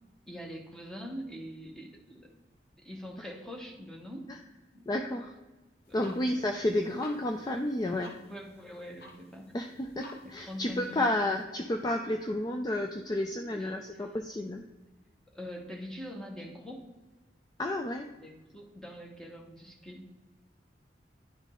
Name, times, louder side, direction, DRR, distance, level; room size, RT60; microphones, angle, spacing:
voice 1, 0.2-2.3 2.8-4.3 4.7-4.9 5.9-6.3 6.7-6.8 8.1-9.5 10.2-11.0 13.4-14.1 15.3-16.9 18.2-20.1, equal, 5° left, 0 dB, 1.1 m, -44 dB
voice 2, 4.9-5.3 5.9-8.1 9.5-14.7 17.6-18.1, left 1 dB, 20° left, 4 dB, 0.4 m, -31 dB
sound 1, 5.8-11.4, left 1 dB, 60° left, 1.0 m, -53 dB
11.0 x 3.6 x 3.7 m, 1.1 s
head